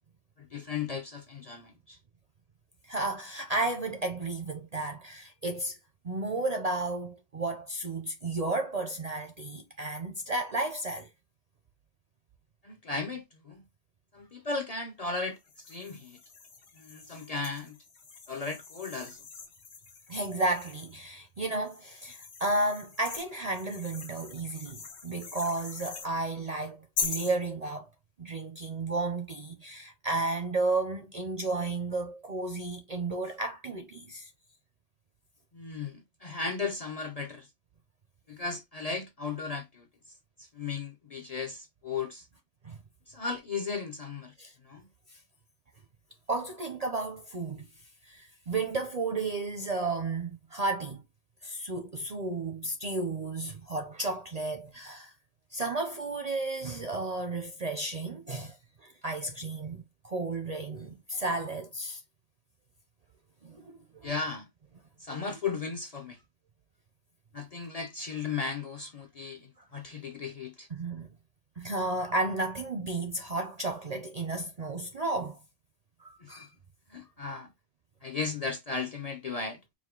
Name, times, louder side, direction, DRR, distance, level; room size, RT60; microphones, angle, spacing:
voice 1, 0.4-2.0 12.6-13.6 14.1-16.2 16.8-17.8 18.3-19.2 35.5-37.5 38.3-39.9 40.4-42.3 43.1-44.3 44.6-44.9 64.0-64.5 65.0-66.2 67.3-70.7 76.2-76.5 76.9-77.5 78.0-79.6, left 4 dB, 45° left, 0.5 m, -36 dB
voice 2, 2.8-5.8 6.0-11.1 20.1-27.9 28.2-34.3 42.6-42.8 44.4-44.5 45.1-45.2 46.3-47.7 48.0-51.0 51.4-55.1 55.5-62.0 63.4-64.1 65.1-65.2 70.7-71.1 71.6-75.4 76.0-76.5, right 2 dB, 50° right, 0.5 m, -33 dB
sound 1, 15.4-21.0 21.6-26.1 27.0-27.4, left 5 dB, 65° left, 1.2 m, -41 dB
4.9 x 2.1 x 3.6 m
omnidirectional pair, 1.2 m